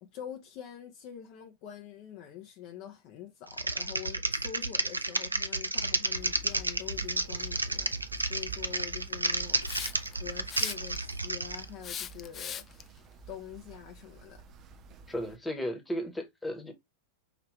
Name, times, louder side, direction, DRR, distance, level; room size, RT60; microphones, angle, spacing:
voice 1, 0.0-12.8 13.3-14.4, left 10 dB, 40° left, 0.8 m, -45 dB
Typing, 3.5-11.6, right 2 dB, 80° right, 0.4 m, -31 dB
sound 1, 6.1-15.4, right 8 dB, 30° right, 0.6 m, -49 dB
Hiss, 9.6-10.1 10.5-11.1 11.8-12.8, left 8 dB, 25° left, 0.5 m, -38 dB
voice 2, 15.1-16.7, equal, 10° left, 1.3 m, -35 dB
5.0 x 2.9 x 3.1 m
figure-of-eight pair, 90°, 0 cm